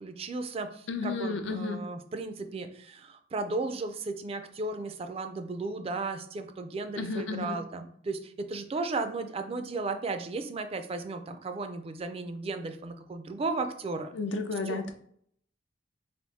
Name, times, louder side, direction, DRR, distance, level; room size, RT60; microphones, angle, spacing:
voice 1, 0.0-14.1 14.7-14.8, right 3 dB, 35° right, 8 dB, 0.4 m, -35 dB
voice 2, 0.9-1.8 6.9-7.6 14.1-14.9, left 3 dB, 80° left, 6 dB, 0.6 m, -32 dB
3.5 x 2.5 x 4.1 m, 0.63 s
head